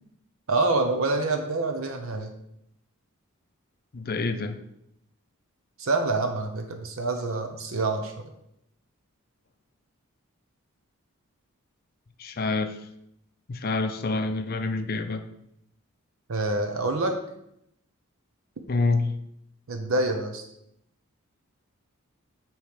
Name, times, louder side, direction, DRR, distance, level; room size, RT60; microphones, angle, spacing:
voice 1, 0.5-2.3 5.8-8.1 16.3-17.1 19.7-20.4, right 2 dB, 70° right, 4 dB, 0.7 m, -26 dB
voice 2, 3.9-4.6 12.2-12.8 13.5-15.2 18.7-19.2, left 3 dB, 45° left, 8 dB, 0.5 m, -27 dB
8.3 x 3.1 x 5.0 m, 0.78 s
head